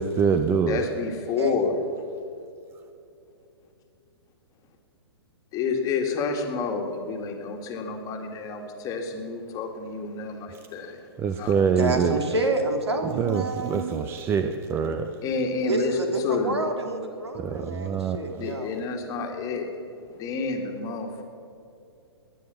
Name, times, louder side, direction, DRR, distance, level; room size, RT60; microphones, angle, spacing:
voice 1, 0.0-0.8 11.2-12.2 13.2-15.1 17.3-18.4, right 6 dB, 15° right, 9 dB, 0.6 m, -25 dB
voice 2, 0.7-1.7 5.5-11.1 11.4-11.5 15.2-16.0 16.2-16.6 18.0-21.2, left 4 dB, 25° left, 3 dB, 2.0 m, -30 dB
voice 3, 11.8-14.0 15.7-18.8, right 2 dB, 75° right, 5 dB, 2.6 m, -28 dB
21.0 x 9.6 x 7.0 m, 2.7 s
figure-of-eight pair, 115°, 14 cm